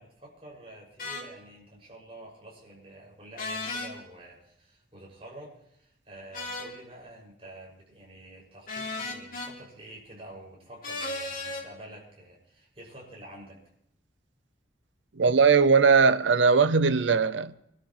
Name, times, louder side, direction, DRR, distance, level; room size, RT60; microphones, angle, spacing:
voice 1, 0.0-13.6, right 1 dB, 30° right, 6.0 m, -48 dB
sound 1, 1.0-1.2 3.4-3.9 6.3-6.7 8.7-9.5 10.8-11.6, left 3 dB, 50° left, 2.6 m, -34 dB
voice 2, 15.2-17.5, right 5 dB, 80° right, 0.7 m, -20 dB
25.5 x 13.0 x 3.1 m
head